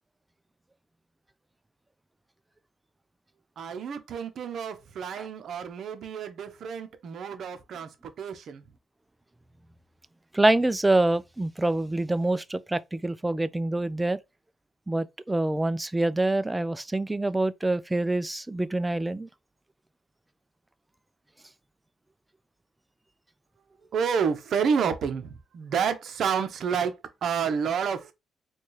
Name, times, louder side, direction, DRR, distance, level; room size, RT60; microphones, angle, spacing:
voice 1, 3.6-8.6 23.9-28.1, right 6 dB, 65° right, 0.7 m, -29 dB
voice 2, 10.3-14.2 14.9-19.3, right 2 dB, 10° right, 0.3 m, -26 dB
4.2 x 2.3 x 3.1 m
cardioid pair, 90°, 0 cm